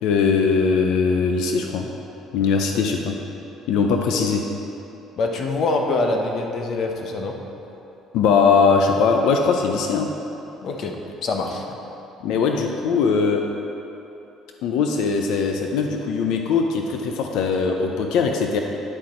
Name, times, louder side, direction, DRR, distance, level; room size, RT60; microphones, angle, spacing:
voice 1, 0.0-1.9 2.3-3.2 3.7-4.4 8.1-10.1 12.2-13.4 14.6-18.6, left 5 dB, 70° left, 3 dB, 0.6 m, -20 dB
voice 2, 5.2-7.4 10.6-11.6, left 3 dB, 40° left, 2 dB, 0.8 m, -24 dB
10.0 x 6.4 x 4.3 m, 3.0 s
cardioid pair, 165°, 0 cm